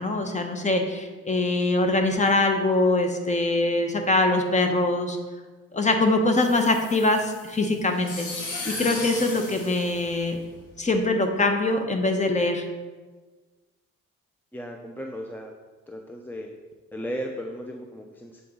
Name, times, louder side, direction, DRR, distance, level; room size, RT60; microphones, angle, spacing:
voice 1, 0.0-5.2 5.7-8.3 8.6-10.4 10.8-12.7, left 2 dB, 25° left, 4 dB, 0.8 m, -23 dB
sound 1, 6.4-10.7, left 3 dB, 90° left, 1.2 m, -36 dB
voice 2, 14.5-15.5 15.9-16.5 16.9-18.4, equal, 5° left, 2 dB, 0.5 m, -35 dB
7.6 x 3.9 x 3.7 m, 1.3 s
cardioid pair, 90°, 30 cm